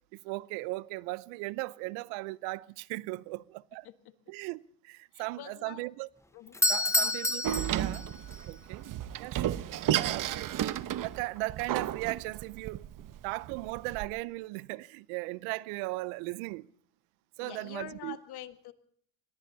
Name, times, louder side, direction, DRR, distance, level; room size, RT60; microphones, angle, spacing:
voice 1, 0.2-3.9 4.3-6.1 6.7-8.1 8.5-8.9 9.2-9.6 9.9-10.7 11.0-12.8 13.2-16.7 17.4-18.2, right 22 dB, 80° right, 0.7 m, -37 dB
voice 2, 5.1-5.8 6.3-6.6 17.4-18.7, left 10 dB, 55° left, 1.7 m, -45 dB
Doorbell, 6.5-8.4, left 1 dB, 5° left, 0.7 m, -28 dB
Door, 7.4-14.1, right 11 dB, 45° right, 0.9 m, -33 dB
23.5 x 21.0 x 2.7 m
supercardioid pair, 110°, 48 cm